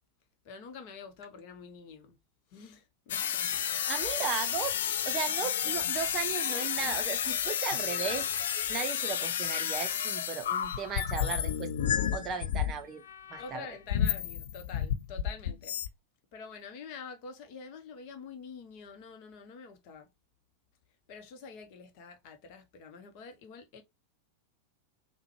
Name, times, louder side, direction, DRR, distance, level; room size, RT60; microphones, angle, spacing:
voice 1, 0.4-2.2 2.5-3.5 13.4-15.8 16.3-20.1 21.1-23.8, left 5 dB, 45° left, 0.7 m, -47 dB
sound 1, 3.1-12.8 13.1-13.6 13.9-15.9, left 9 dB, 60° left, 0.3 m, -31 dB
voice 2, 3.9-4.8 5.1-8.3 8.7-11.7 12.1-13.0 13.3-13.7, right 7 dB, 30° right, 0.5 m, -36 dB
3.5 x 2.1 x 3.1 m
figure-of-eight pair, 90°, 0 cm